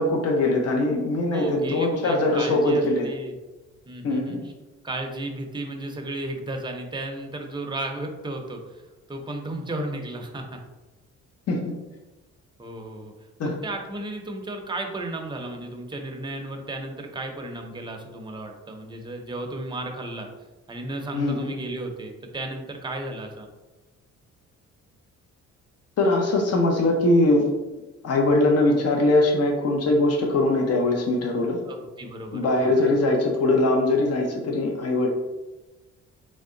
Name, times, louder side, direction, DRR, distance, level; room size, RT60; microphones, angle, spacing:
voice 1, 0.0-3.1 4.0-4.5 11.5-11.7 13.4-13.6 21.1-21.5 26.0-27.5 28.0-31.6 32.3-35.1, left 2 dB, 55° left, 1 dB, 0.7 m, -21 dB
voice 2, 1.3-3.3 3.9-4.4 4.8-8.6 9.1-10.6 12.6-13.1 13.4-20.3 20.7-23.5 31.6-32.9, right 2 dB, 15° right, 3 dB, 0.6 m, -34 dB
3.5 x 2.1 x 3.8 m, 1.1 s
cardioid pair, 90°, 30 cm